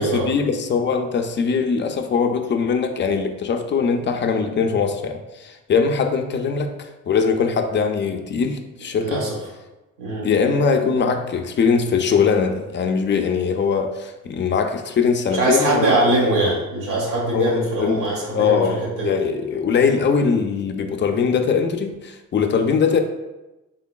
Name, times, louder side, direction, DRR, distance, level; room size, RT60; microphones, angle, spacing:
voice 1, 0.0-9.2 10.2-15.9 17.3-23.0, left 5 dB, 40° left, 5 dB, 0.4 m, -21 dB
voice 2, 8.9-9.4 10.0-10.3 15.3-19.1, right 1 dB, 90° right, -4 dB, 1.4 m, -22 dB
3.8 x 3.6 x 2.2 m, 1.0 s
cardioid pair, 90°, 30 cm